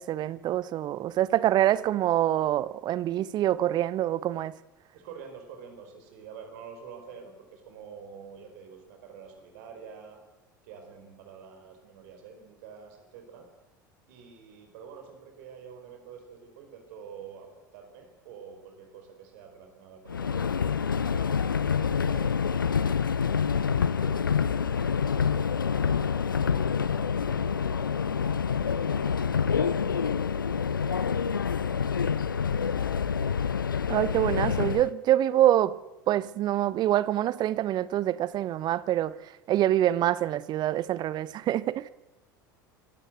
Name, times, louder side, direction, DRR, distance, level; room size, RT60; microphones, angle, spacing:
voice 1, 0.0-4.5 33.9-35.8 36.1-39.2 39.5-41.9, right 13 dB, 40° right, 0.9 m, -25 dB
voice 2, 4.9-10.2 10.6-13.5 14.1-20.7 21.1-24.4 24.7-27.9 28.6-32.7, right 6 dB, 60° right, 4.6 m, -48 dB
Subway metro underground, 20.1-34.9, left 6 dB, 80° left, 0.6 m, -27 dB
25.0 x 16.0 x 7.9 m
figure-of-eight pair, 70°, 11 cm